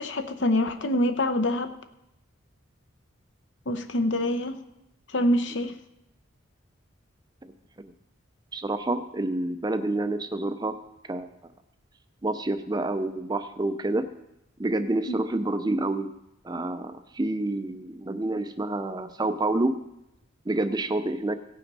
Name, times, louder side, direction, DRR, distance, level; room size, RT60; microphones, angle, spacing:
voice 1, 0.0-1.7 3.7-4.6 5.1-5.7 15.1-15.2, left 1 dB, 60° left, 8 dB, 0.8 m, -25 dB
voice 2, 8.5-10.8 11.1-11.3 12.2-14.0 14.6-16.1 16.4-19.8 20.5-21.3, right 2 dB, 20° right, 9 dB, 0.5 m, -28 dB
16.5 x 5.9 x 5.4 m, 0.87 s
head